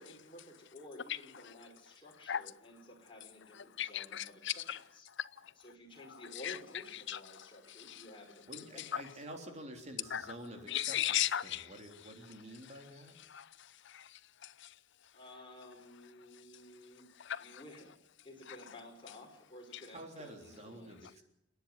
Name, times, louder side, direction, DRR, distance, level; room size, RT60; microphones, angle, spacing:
voice 1, 0.0-4.6 4.9-5.1 5.6-8.6 9.1-9.2 15.1-18.0 18.2-21.1, left 1 dB, 25° left, 5.1 m, -53 dB
voice 2, 3.8-4.8 5.2-5.5 6.4-6.6 7.1-8.0 8.9-9.0 10.1-10.2 10.7-11.7 13.3-14.7 17.2-17.6, left 11 dB, 65° left, 0.7 m, -37 dB
voice 3, 8.5-13.2 19.9-21.2, right 1 dB, 35° right, 3.4 m, -49 dB
29.0 x 10.5 x 9.7 m
head